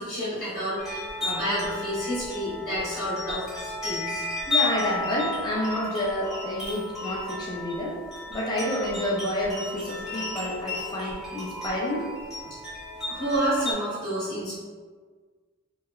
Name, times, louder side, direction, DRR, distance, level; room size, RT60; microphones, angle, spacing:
voice 1, 0.0-4.2 10.2-10.3 13.1-14.6, equal, 40° left, -11 dB, 0.9 m, -29 dB
sound 1, 0.8-13.7, left 2 dB, ahead, 0.7 m, -33 dB
voice 2, 4.4-8.0 8.3-12.1, left 1 dB, 20° left, -5 dB, 0.4 m, -29 dB
2.8 x 2.0 x 2.3 m, 1.5 s
head